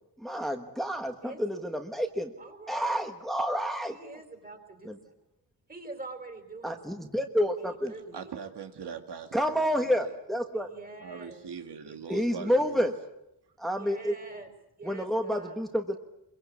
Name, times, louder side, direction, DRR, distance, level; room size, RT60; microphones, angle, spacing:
voice 1, 0.2-2.3 2.7-4.0 4.8-5.0 6.6-7.9 9.3-10.7 12.1-12.9 13.6-14.2 14.8-16.0, equal, ahead, 5 dB, 1.3 m, -29 dB
voice 2, 1.2-1.6 2.4-2.9 3.8-4.9 5.7-7.0 7.7-8.4 10.5-11.5 11.8-12.8 13.8-14.5 14.8-15.6, right 3 dB, 20° right, 6 dB, 3.9 m, -46 dB
voice 3, 8.1-10.1 11.0-12.9, right 6 dB, 80° right, 6 dB, 2.0 m, -41 dB
25.5 x 23.0 x 8.4 m, 0.85 s
wide cardioid pair, 165°, 40 cm